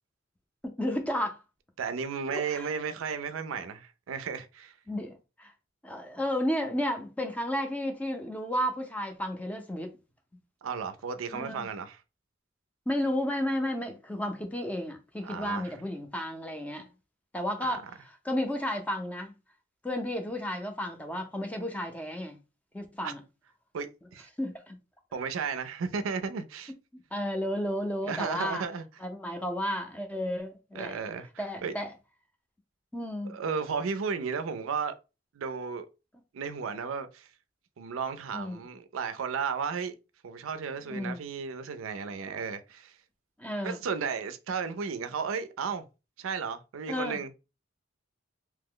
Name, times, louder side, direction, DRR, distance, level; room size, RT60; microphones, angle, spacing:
voice 1, 0.6-1.4 2.3-2.7 4.9-5.5 5.8-9.9 11.3-11.7 12.9-16.9 17.3-19.3 19.8-22.4 22.7-23.2 24.4-24.8 26.9-28.6 29.0-31.0 31.4-31.9 32.9-33.4 38.3-38.6 40.8-41.2 43.4-43.8 46.9-47.2, equal, 5° left, 0.5 m, -32 dB
voice 2, 1.8-4.8 10.6-12.0 15.2-15.7 17.6-17.8 23.0-23.1 23.7-24.3 25.1-26.7 28.0-28.8 30.7-31.7 33.2-34.9 35.3-35.9 36.3-37.3 37.8-40.0 40.2-43.0 43.6-45.8 46.2-47.3, right 5 dB, 90° right, 0.4 m, -34 dB
2.8 x 2.0 x 3.7 m
head